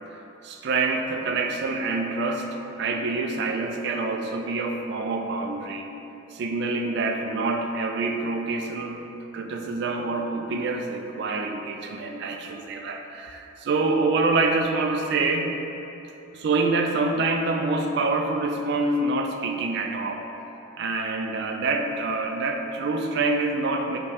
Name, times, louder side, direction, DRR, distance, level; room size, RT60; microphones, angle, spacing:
voice 1, 0.4-2.5 2.8-5.9 6.3-9.0 9.3-15.5 16.3-20.3 20.8-24.0, right 3 dB, 55° right, 4 dB, 0.3 m, -26 dB
5.2 x 2.2 x 3.3 m, 3.0 s
head